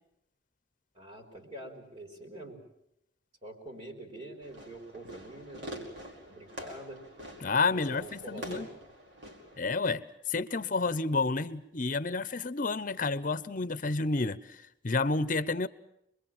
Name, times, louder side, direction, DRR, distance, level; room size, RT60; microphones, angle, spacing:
voice 1, 0.9-2.6 3.4-5.9 6.3-7.0 7.7-8.7, right 1 dB, 35° right, 3.9 m, -45 dB
Fireworks, 4.4-9.6, equal, 70° right, 5.0 m, -46 dB
voice 2, 7.4-8.7 9.6-10.0 10.3-14.6 14.8-15.7, left 3 dB, 45° left, 0.9 m, -30 dB
26.0 x 22.0 x 7.4 m
head